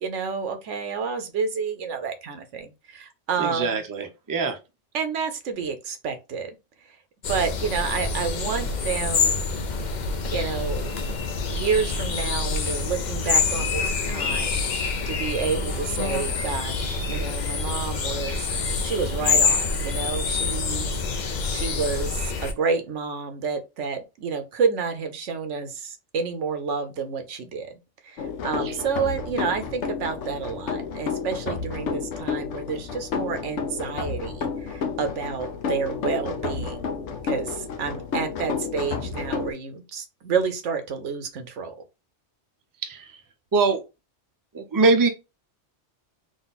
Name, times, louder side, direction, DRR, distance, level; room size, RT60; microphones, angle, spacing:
voice 1, 0.0-3.8 4.9-6.5 7.3-9.4 10.3-11.0 11.5-27.7 28.0-37.0 37.2-41.7, right 5 dB, 85° right, 1.1 m, -29 dB
voice 2, 3.4-4.6 28.6-28.7 42.8-43.0 43.5-43.8 44.5-45.1, right 3 dB, 25° right, 0.5 m, -22 dB
sound 1, 7.2-22.5, left 4 dB, 50° left, 0.6 m, -26 dB
sound 2, 28.2-39.5, left 5 dB, 80° left, 1.0 m, -31 dB
3.8 x 2.5 x 4.0 m
omnidirectional pair, 1.2 m